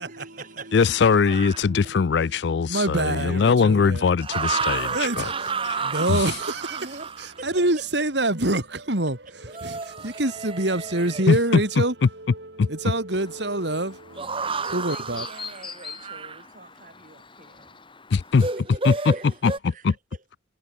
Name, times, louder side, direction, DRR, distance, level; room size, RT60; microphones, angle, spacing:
voice 1, 0.0-0.9 3.1-3.5 4.3-7.1 7.4-8.1 14.4-17.8 18.4-20.2, right 3 dB, 45° right, 6.8 m, -44 dB
voice 2, 0.7-4.9 5.2-5.3 6.1-6.2 11.3-11.4 12.6-12.7 18.1-18.5 18.8-19.1 19.4-19.5 19.8-19.9, left 5 dB, 65° left, 0.4 m, -20 dB
sound 1, 1.2-1.7 4.2-7.4 9.5-11.3 14.2-16.4 18.4-19.6, right 4 dB, 30° right, 2.1 m, -31 dB
voice 3, 1.6-4.1 4.7-5.3 5.7-15.3, right 2 dB, 65° right, 3.3 m, -27 dB
Chirp tweet, 13.1-18.6, left 6 dB, 25° left, 5.8 m, -44 dB
head